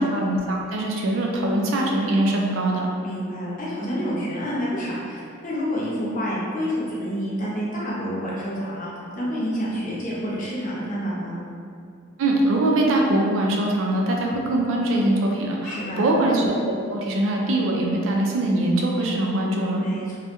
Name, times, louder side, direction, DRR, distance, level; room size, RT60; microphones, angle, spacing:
voice 1, 0.0-2.9 12.2-19.8, right 1 dB, 80° right, -1 dB, 0.4 m, -22 dB
voice 2, 3.0-8.9 9.1-11.4 15.6-16.2 19.7-20.2, equal, 40° left, -7 dB, 0.6 m, -28 dB
2.2 x 2.1 x 2.8 m, 2.4 s
head